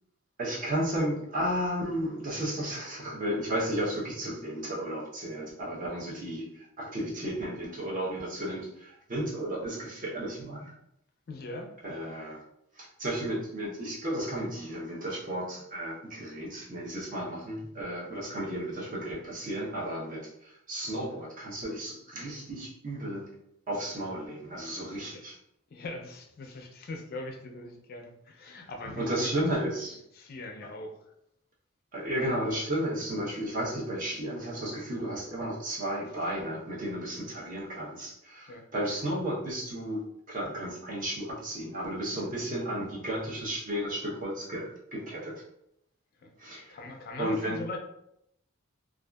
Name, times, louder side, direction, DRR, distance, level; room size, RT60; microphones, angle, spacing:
voice 1, 0.4-10.7 11.8-12.4 12.8-23.3 23.7-25.3 29.0-30.0 31.9-40.0 40.3-45.3 46.4-46.8 47.2-47.6, right 1 dB, 40° right, -4 dB, 0.7 m, -33 dB
voice 2, 11.3-12.0 25.1-25.2 25.7-29.3 30.1-31.1 38.5-38.7 46.2-47.8, left 2 dB, 45° left, 3 dB, 0.4 m, -41 dB
2.6 x 2.3 x 2.2 m, 0.77 s
head